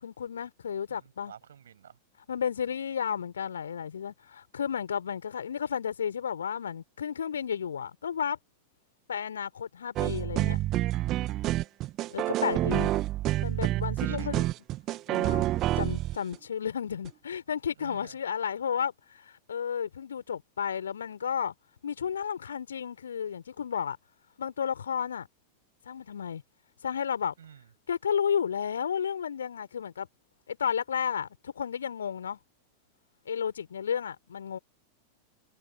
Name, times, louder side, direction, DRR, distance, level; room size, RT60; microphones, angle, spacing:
voice 1, 0.0-1.3 2.3-8.4 9.1-10.6 12.1-12.9 13.4-14.4 15.1-15.5 15.8-21.5 21.8-24.0 24.4-25.3 25.9-26.4 26.8-27.3 27.9-30.1 30.5-32.4 33.3-34.6, left 7 dB, 70° left, 4.5 m, -32 dB
voice 2, 0.9-2.0 14.0-14.5 17.8-18.2 27.4-27.7, right 9 dB, 65° right, 6.9 m, -50 dB
sound 1, 10.0-16.3 17.0-17.1, right 15 dB, 35° right, 1.9 m, -28 dB
figure-of-eight pair, 90°, 0 cm